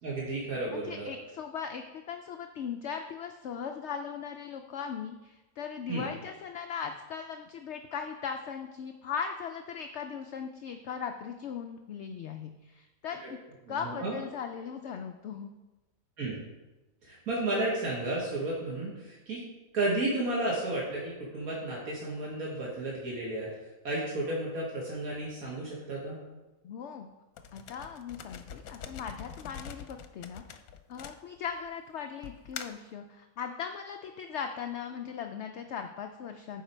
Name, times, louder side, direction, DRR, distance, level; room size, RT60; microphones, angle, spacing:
voice 1, 0.0-1.1 5.9-6.1 13.2-13.3 13.7-14.2 16.2-16.4 17.0-19.4 19.7-23.5 23.8-26.2, right 2 dB, 85° right, -5 dB, 2.1 m, -32 dB
voice 2, 0.7-13.4 13.7-15.5 26.6-27.1 27.5-30.6 30.9-36.6, left 7 dB, 65° left, 5 dB, 0.7 m, -38 dB
sound 1, 27.4-31.7 32.2-32.9, left 7 dB, 90° left, 1.1 m, -44 dB
11.5 x 5.0 x 4.5 m, 1.1 s
omnidirectional pair, 1.5 m